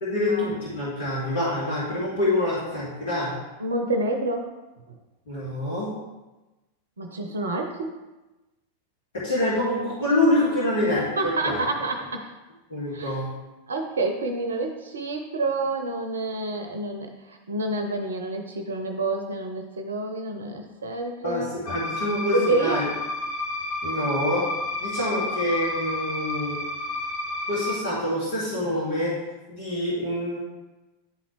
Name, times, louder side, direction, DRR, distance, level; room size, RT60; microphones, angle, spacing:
voice 1, 0.0-3.3 5.3-5.9 9.1-11.6 12.7-13.3 21.2-22.9 23.8-24.4 24.8-26.6 27.5-29.2 29.5-30.4, left 1 dB, 60° left, -7 dB, 2.1 m, -26 dB
voice 2, 3.6-4.5 7.0-7.9 11.2-12.3 12.9-13.3 13.7-21.5 22.3-22.9, right 2 dB, 70° right, 5 dB, 0.6 m, -28 dB
sound 1, 21.7-27.7, left 2 dB, 40° left, 1.1 m, -31 dB
10.5 x 4.0 x 3.2 m, 1.1 s
figure-of-eight pair, 90°, 0 cm